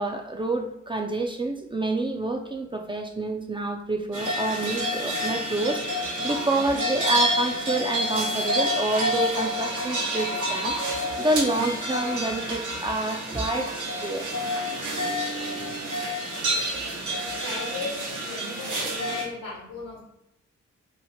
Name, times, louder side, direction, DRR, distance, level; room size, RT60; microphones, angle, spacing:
voice 1, 0.0-14.3, right 2 dB, 15° right, 3 dB, 0.3 m, -28 dB
sound 1, 4.1-19.2, equal, 75° right, 0.9 m, -28 dB
voice 2, 17.4-20.0, left 3 dB, 80° left, -7 dB, 0.9 m, -36 dB
3.0 x 2.0 x 2.6 m, 0.82 s
supercardioid pair, 45°, 31 cm